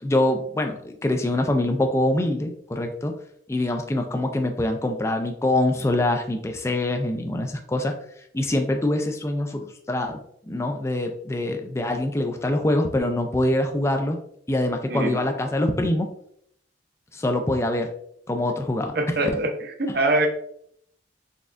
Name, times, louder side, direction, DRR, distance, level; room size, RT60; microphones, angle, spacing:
voice 1, 0.0-3.2 3.5-8.0 8.3-14.2 14.5-16.1 17.1-17.9 18.3-19.0 19.9-20.0, left 1 dB, 15° left, 5 dB, 0.3 m, -24 dB
voice 2, 18.9-19.5 19.8-20.3, right 2 dB, 55° right, 4 dB, 0.7 m, -23 dB
4.2 x 3.4 x 2.5 m, 0.68 s
head